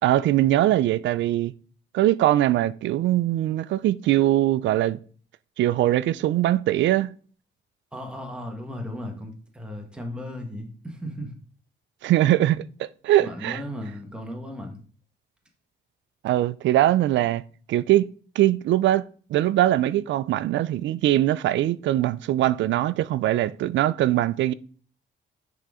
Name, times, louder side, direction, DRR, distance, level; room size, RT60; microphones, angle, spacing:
voice 1, 0.0-1.5 1.9-5.0 5.6-7.1 12.0-13.6 16.2-17.4 17.7-18.1 18.4-19.0 19.3-24.5, right 13 dB, 75° right, 0.4 m, -21 dB
voice 2, 7.9-11.3 13.2-14.8, equal, 5° right, 1.3 m, -36 dB
9.8 x 3.9 x 3.6 m
cardioid pair, 120°, 19 cm